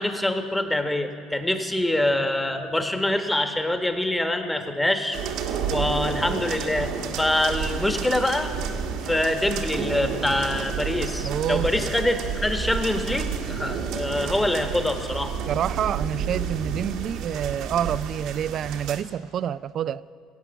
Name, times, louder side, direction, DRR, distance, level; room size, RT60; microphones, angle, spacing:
voice 1, 0.0-5.2 5.7-6.9 7.2-8.5 9.0-15.4, left 1 dB, 10° left, 6 dB, 1.5 m, -25 dB
sound 1, 5.1-19.0, right 6 dB, 70° right, 1.3 m, -30 dB
voice 2, 11.2-11.9 15.5-20.0, right 9 dB, 55° right, 17 dB, 0.4 m, -28 dB
16.5 x 8.2 x 7.0 m, 2.2 s
hypercardioid pair, 70°, 0 cm